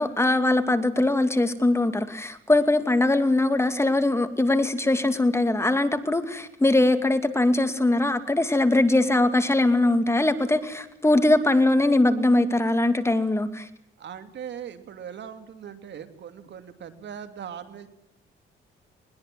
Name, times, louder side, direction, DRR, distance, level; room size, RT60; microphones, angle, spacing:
voice 1, 0.0-13.7, left 2 dB, 15° left, 9 dB, 2.4 m, -21 dB
voice 2, 14.0-17.9, right 8 dB, 65° right, 9 dB, 2.8 m, -40 dB
21.0 x 21.0 x 7.7 m, 0.76 s
cardioid pair, 90°, 20 cm